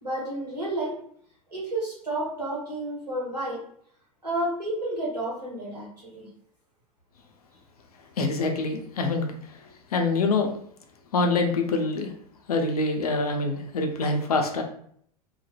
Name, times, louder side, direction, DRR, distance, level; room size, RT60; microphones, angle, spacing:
voice 1, 0.0-0.9 1.5-3.6 4.2-6.3, right 1 dB, 90° right, -5 dB, 1.1 m, -31 dB
voice 2, 8.2-9.3 9.9-10.5 11.1-12.1 12.5-14.6, left 3 dB, 70° left, 3 dB, 0.5 m, -25 dB
2.3 x 2.0 x 3.2 m, 0.64 s
figure-of-eight pair, 80°, 20 cm